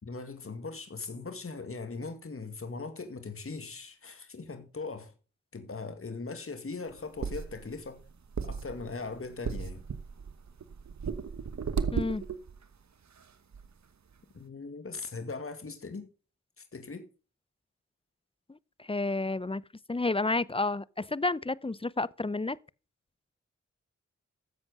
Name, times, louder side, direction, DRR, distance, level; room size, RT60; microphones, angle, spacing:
voice 1, 0.0-5.1 5.5-8.0 8.4-9.8 14.3-16.1 16.6-17.1, left 4 dB, 45° left, 2.2 m, -40 dB
sound 1, 6.9-12.6 13.2-13.3 13.5-13.7, right 6 dB, 65° right, 1.2 m, -35 dB
voice 2, 11.9-12.2 18.5-19.6 19.9-22.6, left 2 dB, 20° left, 0.6 m, -31 dB
13.5 x 7.6 x 5.2 m
cardioid pair, 45°, 30 cm